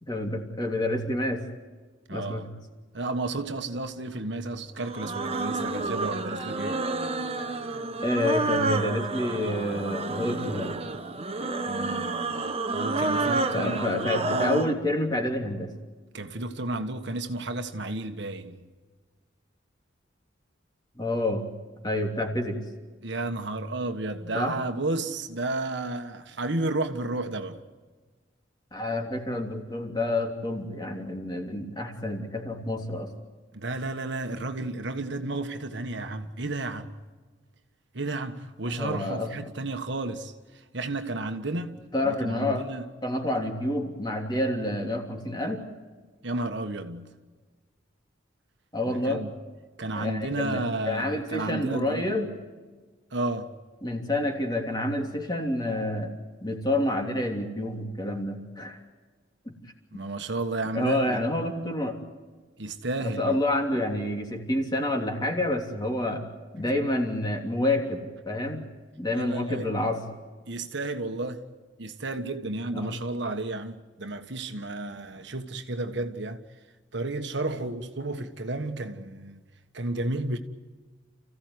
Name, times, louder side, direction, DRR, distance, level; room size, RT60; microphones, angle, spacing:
voice 1, 0.0-1.4 2.1-2.5 8.0-10.7 13.4-15.7 20.9-21.5 21.8-22.6 24.3-24.6 28.7-33.1 38.6-39.3 41.9-42.7 43.0-45.6 48.7-49.2 49.9-52.3 53.8-56.1 56.4-58.8 59.4-59.5 59.9-60.0 60.7-62.0 63.0-66.2 66.5-68.7 69.0-70.0 72.7-73.0 78.2-78.3, left 1 dB, 20° left, 3.1 m, -28 dB
voice 2, 2.1-2.5 2.9-6.8 11.7-14.7 16.1-18.7 23.0-27.6 33.5-36.9 37.9-42.8 46.2-47.1 48.9-49.3 49.8-52.2 53.1-53.5 59.9-61.2 62.6-63.4 69.1-69.7 70.5-71.4 71.8-76.4 76.9-79.4 79.7-80.4, right 2 dB, 65° right, 1.5 m, -32 dB
sound 1, 4.8-14.7, right 3 dB, 30° right, 1.3 m, -29 dB
29.0 x 15.5 x 9.6 m
head